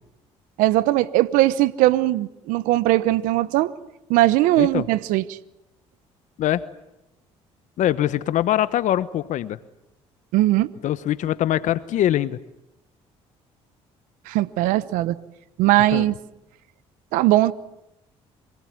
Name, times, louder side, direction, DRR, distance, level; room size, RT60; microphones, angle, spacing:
voice 1, 0.6-3.7 4.1-5.4 10.3-10.7 14.3-15.2 15.6-16.1 17.1-17.5, right 16 dB, 85° right, 17 dB, 0.9 m, -19 dB
voice 2, 7.8-9.6 10.8-12.4 15.9-16.1, left 12 dB, 65° left, 15 dB, 1.0 m, -23 dB
26.5 x 19.5 x 9.6 m, 0.87 s
supercardioid pair, 70°, 13 cm